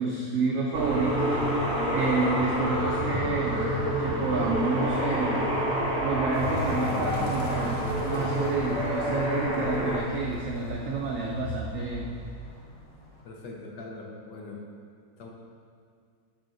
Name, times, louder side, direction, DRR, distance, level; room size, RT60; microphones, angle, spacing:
voice 1, 0.0-1.4 1.9-3.7 4.0-5.5 6.0-12.1, right 3 dB, 80° right, -1 dB, 0.7 m, -29 dB
sound 1, 0.7-10.0, equal, 5° right, 0.5 m, -28 dB
sound 2, 6.3-13.2, left 1 dB, 25° left, 0.8 m, -39 dB
voice 2, 13.2-14.6 15.2-15.3, left 3 dB, 70° left, 0 dB, 1.3 m, -41 dB
5.7 x 4.7 x 3.8 m, 2.1 s
omnidirectional pair, 2.0 m